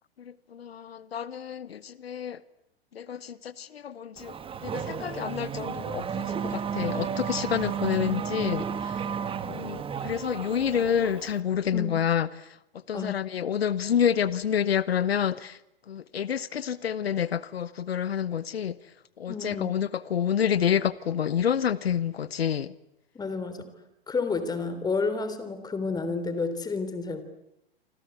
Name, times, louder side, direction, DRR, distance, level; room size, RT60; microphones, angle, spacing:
voice 1, 0.2-2.4 2.9-4.4 4.6-9.1 9.5-15.6 15.9-22.7, left 8 dB, 75° left, 18 dB, 1.0 m, -28 dB
Race car auto racing / Accelerating revving vroom, 4.2-11.4, right 7 dB, 15° right, 1.7 m, -33 dB
voice 2, 19.3-19.8 23.1-23.7 24.1-27.2, left 4 dB, 15° left, 11 dB, 3.5 m, -30 dB
28.0 x 25.0 x 8.1 m, 0.87 s
figure-of-eight pair, 110°, 31 cm